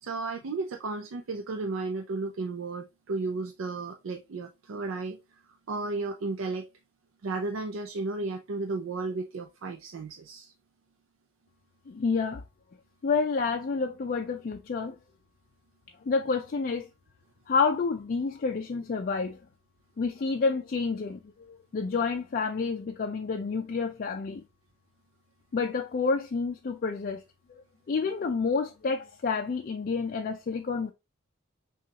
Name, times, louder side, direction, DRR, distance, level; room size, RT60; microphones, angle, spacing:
voice 1, 0.0-5.2 5.7-6.7 7.2-10.5, right 3 dB, 75° right, 0.5 m, -33 dB
voice 2, 11.9-12.4 13.0-15.0 16.0-16.9 17.5-19.4 20.0-24.4 25.5-27.2 27.9-30.9, left 4 dB, 45° left, 0.4 m, -29 dB
5.8 x 2.3 x 2.8 m
head